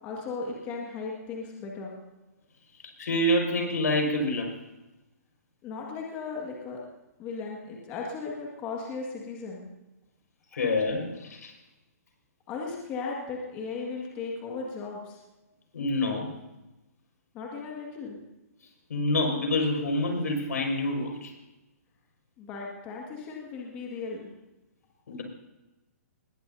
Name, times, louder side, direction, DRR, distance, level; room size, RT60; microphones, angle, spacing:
voice 1, 0.0-1.9 5.6-6.8 7.2-9.6 10.5-10.6 12.5-15.2 17.3-18.2 22.4-24.3, left 4 dB, 15° left, -1 dB, 1.9 m, -36 dB
voice 2, 3.0-4.6 10.5-11.5 15.7-16.3 18.9-21.3 25.1-25.2, left 1 dB, 85° left, 2 dB, 5.4 m, -27 dB
20.0 x 17.5 x 2.7 m, 1.0 s
hypercardioid pair, 180°, 9 cm